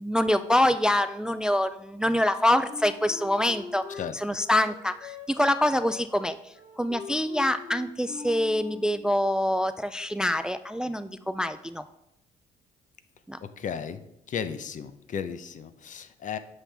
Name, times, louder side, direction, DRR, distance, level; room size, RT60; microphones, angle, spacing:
voice 1, 0.0-11.8 13.3-13.4, left 1 dB, 5° right, 12 dB, 0.3 m, -25 dB
Wind instrument woodwind instrument, 2.7-9.0, left 4 dB, 85° left, 2.7 m, -42 dB
voice 2, 13.6-14.0 14.3-16.4, left 7 dB, 50° left, 11 dB, 0.7 m, -34 dB
8.1 x 5.7 x 3.4 m, 0.82 s
supercardioid pair, 75°, 16 cm